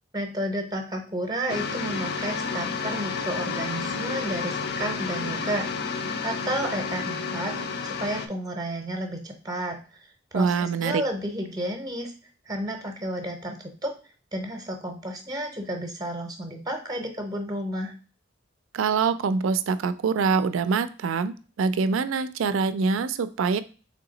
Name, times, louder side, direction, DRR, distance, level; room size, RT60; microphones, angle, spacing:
voice 1, 0.1-9.8 10.3-12.1 12.5-13.9 14.3-17.9, right 1 dB, 20° right, 4 dB, 0.6 m, -32 dB
sound 1, 1.5-8.3, left 5 dB, 55° left, 0.4 m, -31 dB
voice 2, 10.3-11.0 18.7-23.6, right 5 dB, 85° right, 13 dB, 0.4 m, -24 dB
3.5 x 2.8 x 3.8 m, 0.36 s
head